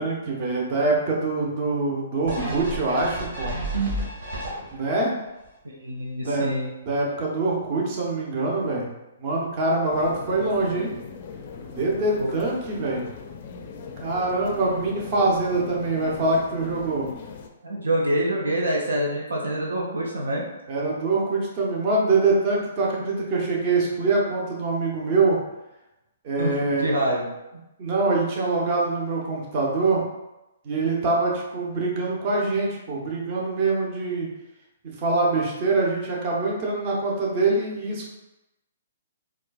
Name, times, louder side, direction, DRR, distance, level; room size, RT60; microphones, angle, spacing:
voice 1, 0.0-3.5 4.7-5.1 6.2-6.5 6.9-8.9 9.2-10.9 11.7-13.1 14.0-17.1 20.7-25.4 26.2-26.9 27.8-30.0 30.6-34.3 35.0-38.1, right 3 dB, 40° right, -3 dB, 0.8 m, -24 dB
sound 1, 2.3-5.0 5.4-5.5, right 2 dB, 60° right, 1.4 m, -30 dB
voice 2, 5.6-6.7 12.2-12.3 17.6-20.5 26.4-27.2, right 1 dB, 85° right, -2 dB, 0.7 m, -26 dB
sound 2, 9.9-17.5, left 6 dB, 45° left, 0.4 m, -40 dB
4.2 x 2.4 x 2.4 m, 0.95 s
hypercardioid pair, 130°, 0 cm